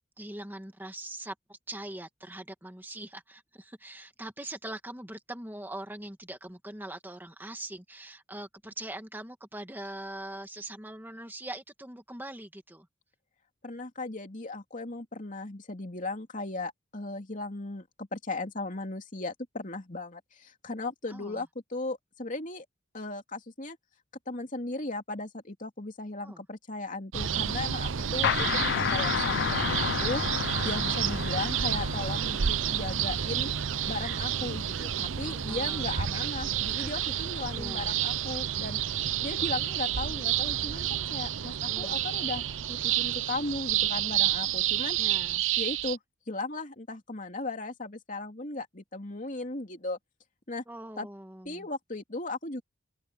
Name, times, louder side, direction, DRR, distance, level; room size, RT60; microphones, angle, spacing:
voice 1, 0.2-12.9 21.1-21.4 26.2-26.4 31.0-31.3 35.5-36.3 37.6-38.0 41.7-42.0 45.0-45.4 50.7-51.7, right 1 dB, 10° right, 1.8 m, -42 dB
voice 2, 13.6-22.6 22.9-23.8 24.3-33.5 33.9-38.8 39.2-45.0 45.6-46.0 46.3-50.0 50.5-50.6 51.0-51.1 51.4-52.6, left 2 dB, 40° left, 3.0 m, -36 dB
sound 1, 27.1-46.0, right 10 dB, 80° right, 0.7 m, -30 dB
sound 2, 28.2-33.7, left 8 dB, 60° left, 0.4 m, -31 dB
head